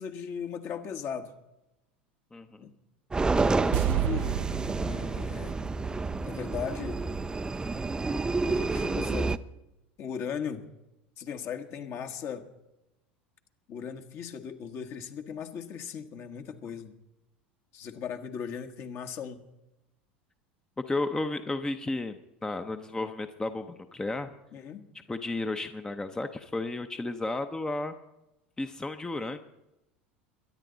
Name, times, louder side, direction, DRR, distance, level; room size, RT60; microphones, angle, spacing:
voice 1, 0.0-1.3 2.6-2.7 3.4-4.4 4.8-5.6 6.2-7.0 8.5-9.3 10.0-10.7 11.2-12.5 13.7-16.9 17.7-19.5 24.5-24.9, left 7 dB, 45° left, 6 dB, 1.5 m, -38 dB
voice 2, 2.3-2.7 20.9-24.3 25.1-27.9 28.6-29.4, left 2 dB, 10° left, 8 dB, 0.8 m, -33 dB
sound 1, 3.1-9.4, right 3 dB, 15° right, 0.5 m, -29 dB
sound 2, 3.7-6.9 7.2-7.3, right 13 dB, 65° right, 0.4 m, -33 dB
22.0 x 10.0 x 4.0 m, 0.93 s
hypercardioid pair, 80°, 6 cm